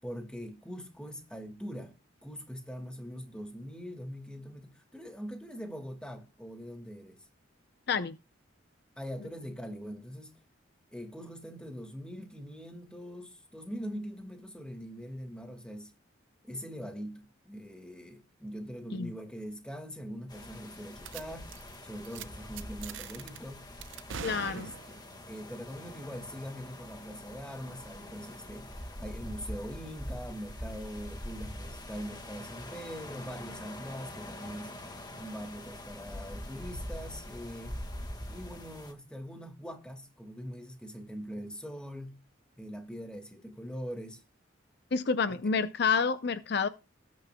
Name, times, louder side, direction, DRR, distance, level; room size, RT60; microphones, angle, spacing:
voice 1, 0.0-2.0 2.2-7.2 9.0-10.3 10.9-15.9 16.4-21.5 21.8-23.7 24.6-34.8 35.2-37.8 38.3-42.2 42.6-44.2 45.3-45.4, equal, 5° left, 1.8 m, -42 dB
sound 1, 20.3-38.9, left 1 dB, 20° left, 1.7 m, -44 dB
sound 2, 21.0-21.2 21.5-21.7 22.0-22.2 22.6-23.4 23.8-25.1, right 6 dB, 70° right, 0.7 m, -42 dB
voice 2, 24.2-24.7 44.9-46.7, left 5 dB, 55° left, 0.6 m, -28 dB
19.0 x 9.3 x 2.2 m
head